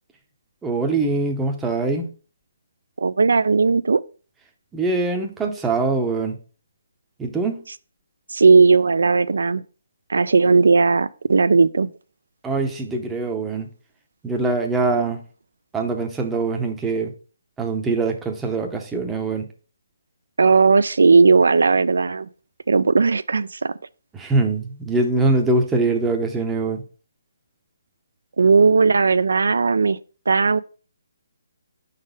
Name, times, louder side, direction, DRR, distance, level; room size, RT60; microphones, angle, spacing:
voice 1, 0.6-2.1 4.7-6.4 7.2-7.6 12.4-13.7 14.2-15.2 15.7-17.1 17.6-19.5 24.1-26.8, right 3 dB, 5° right, 0.6 m, -23 dB
voice 2, 3.0-4.0 8.3-9.6 10.1-11.9 20.4-22.3 22.7-23.7 28.4-30.0 30.3-30.6, right 4 dB, 80° right, 0.3 m, -16 dB
5.1 x 4.0 x 5.1 m
hypercardioid pair, 165°, 0 cm